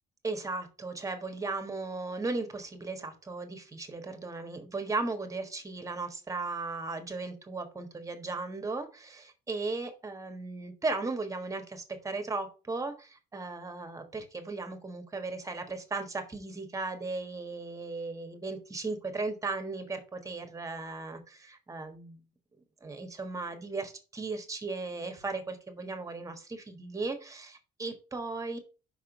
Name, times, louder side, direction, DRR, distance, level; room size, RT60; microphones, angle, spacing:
voice 1, 0.2-22.2 22.8-28.6, right 3 dB, 20° right, 6 dB, 1.5 m, -36 dB
5.7 x 3.6 x 5.8 m, 0.33 s
cardioid pair, 110°, 17 cm